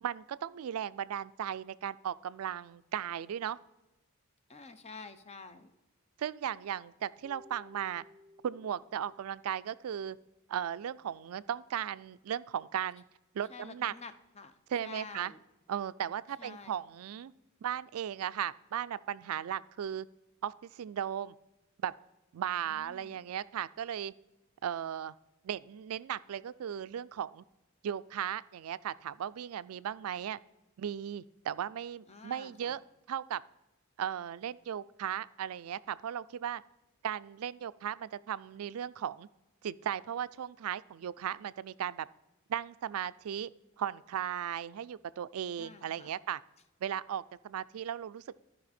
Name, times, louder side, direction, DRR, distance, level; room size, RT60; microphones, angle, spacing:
voice 1, 0.0-3.6 6.2-8.0 8.4-10.2 10.5-13.0 13.3-13.9 14.7-15.3 15.7-17.3 17.6-20.1 20.4-21.3 21.8-21.9 22.3-24.1 24.6-25.1 25.4-27.4 27.8-30.4 30.8-32.8 33.1-33.4 34.0-36.6 37.0-39.3 39.6-42.1 42.5-43.5 43.8-46.4 46.8-48.4, right 9 dB, 85° right, 17 dB, 0.4 m, -36 dB
voice 2, 4.5-5.7 13.5-14.6 14.8-15.4 16.4-16.7 22.6-23.2 32.1-32.8 45.6-46.2, left 4 dB, 30° left, 11 dB, 0.7 m, -49 dB
Keyboard (musical), 7.2-10.5, left 2 dB, 35° right, 0.7 m, -59 dB
13.5 x 5.5 x 4.2 m, 1.0 s
head